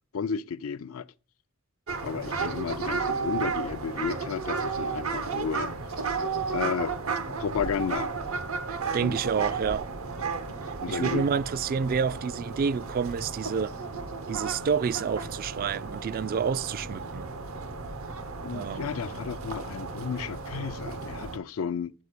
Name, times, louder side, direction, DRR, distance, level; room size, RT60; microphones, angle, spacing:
voice 1, 0.1-1.1 2.0-5.7 6.5-6.9 7.4-8.1 8.9-9.2 10.8-11.2 18.3-21.9, left 6 dB, 80° left, 0.4 m, -32 dB
sound 1, 1.9-21.4, right 4 dB, 90° right, 0.9 m, -33 dB
voice 2, 8.9-9.8 10.9-13.8 14.3-17.3 18.5-19.0, right 6 dB, 45° right, 0.3 m, -29 dB
8.5 x 4.4 x 6.6 m
head